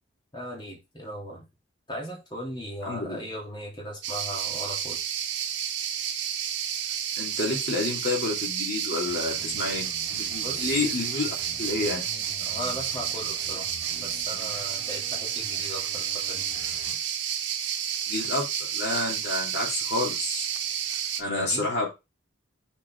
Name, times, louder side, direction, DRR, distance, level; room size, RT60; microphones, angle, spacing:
voice 1, 0.3-1.5 1.9-5.1 10.4-11.0 12.4-13.7 13.9-16.4 21.2-21.7, equal, 25° left, -3 dB, 3.1 m, -38 dB
voice 2, 2.9-3.2 7.2-12.0 18.1-20.5 21.2-21.9, left 2 dB, 60° left, -1 dB, 2.9 m, -29 dB
sound 1, 4.0-21.2, right 9 dB, 75° right, 1.3 m, -31 dB
sound 2, 9.1-17.0, right 1 dB, 15° right, 3.1 m, -47 dB
6.6 x 5.2 x 4.6 m, 0.24 s
head